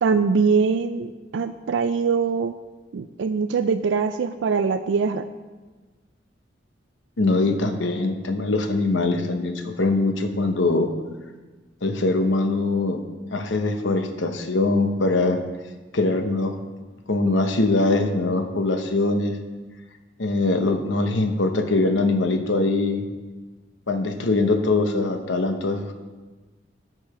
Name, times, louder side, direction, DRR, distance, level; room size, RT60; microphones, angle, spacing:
voice 1, 0.0-2.6 2.9-5.3, right 5 dB, 75° right, 9 dB, 0.4 m, -22 dB
voice 2, 7.2-10.9 11.8-13.0 13.3-15.4 15.9-16.6 17.1-19.4 20.2-23.0 23.9-25.9, left 2 dB, 80° left, 6 dB, 0.9 m, -22 dB
7.8 x 6.7 x 6.1 m, 1.3 s
head